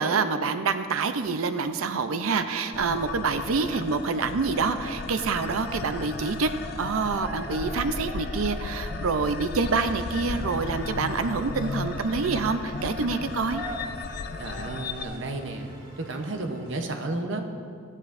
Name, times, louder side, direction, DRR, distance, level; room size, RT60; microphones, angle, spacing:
voice 1, 0.0-6.5 6.8-13.6, right 4 dB, 85° right, 9 dB, 0.5 m, -27 dB
sound 1, 2.7-15.0, left 4 dB, 45° left, 0.3 m, -35 dB
Cheering, 5.4-15.5, equal, 5° right, 0.7 m, -43 dB
sound 2, 9.9-16.8, right 1 dB, 25° right, 2.2 m, -49 dB
voice 2, 14.4-17.4, right 2 dB, 60° right, 4 dB, 0.8 m, -32 dB
14.0 x 9.7 x 2.6 m, 2.2 s
head